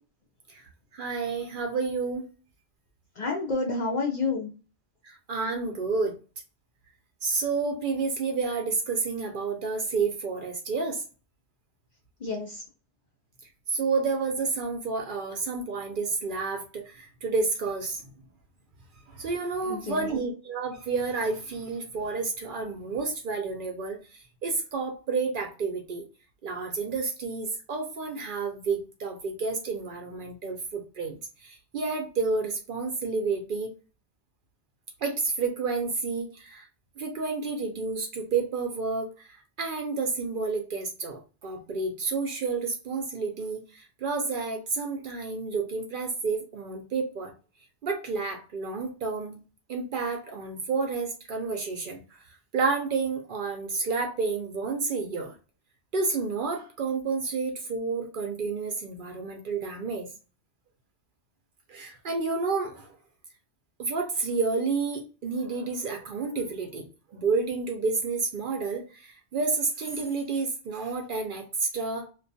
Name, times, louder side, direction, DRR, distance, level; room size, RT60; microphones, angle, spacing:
voice 1, 0.5-2.3 5.0-6.1 7.2-11.0 13.7-18.1 19.1-26.0 26.4-33.7 35.0-36.7 37.0-47.3 47.8-49.4 49.7-52.0 52.5-55.3 55.9-60.1 61.7-63.0 63.8-72.1, right 4 dB, 60° right, 3 dB, 0.6 m, -30 dB
voice 2, 3.1-4.5 12.2-12.6 19.6-20.1, left 3 dB, 55° left, 0 dB, 0.5 m, -29 dB
2.3 x 2.2 x 2.5 m, 0.33 s
omnidirectional pair, 1.1 m